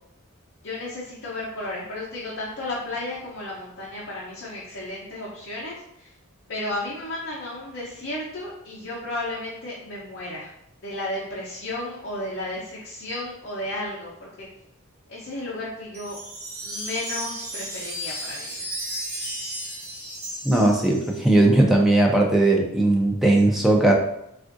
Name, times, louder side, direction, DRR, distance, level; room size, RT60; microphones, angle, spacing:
voice 1, 0.6-6.1 6.5-10.5 10.8-14.5 15.1-16.2 16.6-18.7, left 1 dB, 55° left, -5 dB, 0.6 m, -33 dB
Wind chime, 15.9-21.3, right 1 dB, 65° right, 0.9 m, -34 dB
voice 2, 20.4-23.9, right 2 dB, ahead, -1 dB, 0.4 m, -18 dB
3.5 x 2.4 x 2.5 m, 0.79 s
head